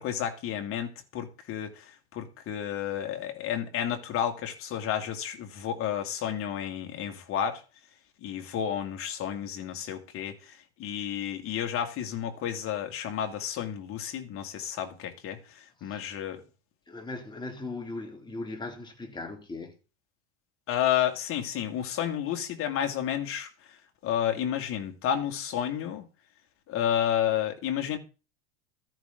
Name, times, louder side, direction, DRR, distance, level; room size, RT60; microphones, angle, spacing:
voice 1, 0.0-1.9 2.1-7.6 8.2-15.4 15.8-16.4 20.7-23.5 24.0-26.0 26.7-28.0, left 10 dB, 40° left, 2.6 m, -31 dB
voice 2, 15.8-16.2 16.9-19.7, left 3 dB, 15° left, 2.9 m, -39 dB
14.0 x 10.5 x 4.0 m
supercardioid pair, 125°, 32 cm